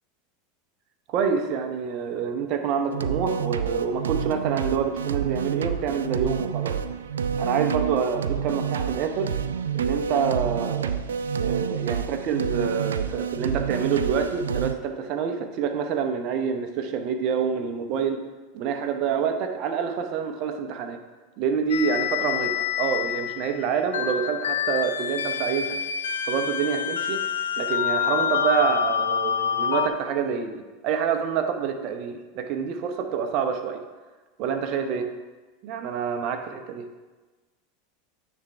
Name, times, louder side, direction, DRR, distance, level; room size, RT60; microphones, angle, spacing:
voice 1, 1.1-6.8 7.4-9.3 9.7-10.9 11.4-18.2 18.5-21.0 21.4-25.8 26.2-27.2 27.6-33.8 34.4-35.1 35.6-36.9, right 7 dB, 50° right, 6 dB, 0.8 m, -27 dB
sound 1, 2.9-14.7, right 7 dB, 80° right, 0.3 m, -28 dB
sound 2, 21.7-29.9, left 8 dB, 75° left, 0.4 m, -27 dB
9.4 x 3.5 x 4.4 m, 1.3 s
hypercardioid pair, 90°, 0 cm